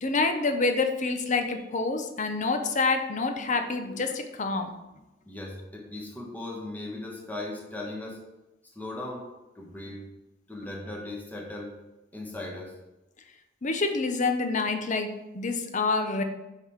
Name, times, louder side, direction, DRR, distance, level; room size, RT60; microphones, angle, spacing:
voice 1, 0.0-4.7 13.6-16.2, left 3 dB, 40° left, 6 dB, 0.8 m, -27 dB
voice 2, 5.3-8.2 8.7-9.3 9.5-10.1 10.5-11.8 12.1-12.7, left 2 dB, 10° left, -2 dB, 1.3 m, -38 dB
5.7 x 5.3 x 6.3 m, 1.0 s
head